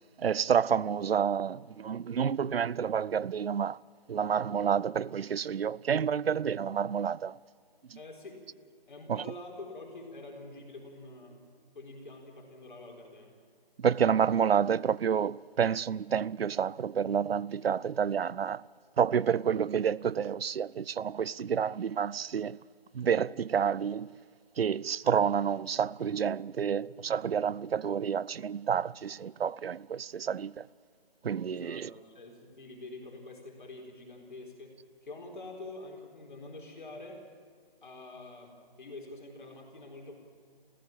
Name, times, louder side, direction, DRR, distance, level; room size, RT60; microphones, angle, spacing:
voice 1, 0.2-3.8 4.1-7.4 7.9-8.0 9.1-9.2 13.8-18.6 19.0-22.6 22.9-24.1 24.6-30.7 31.2-31.9, right 7 dB, 85° right, 0.6 m, -29 dB
voice 2, 8.0-8.4 8.9-11.4 11.7-13.3 31.5-37.2 37.8-38.5 38.8-40.2, left 2 dB, 55° left, 4.2 m, -46 dB
27.0 x 15.5 x 8.8 m
figure-of-eight pair, 170°, 29 cm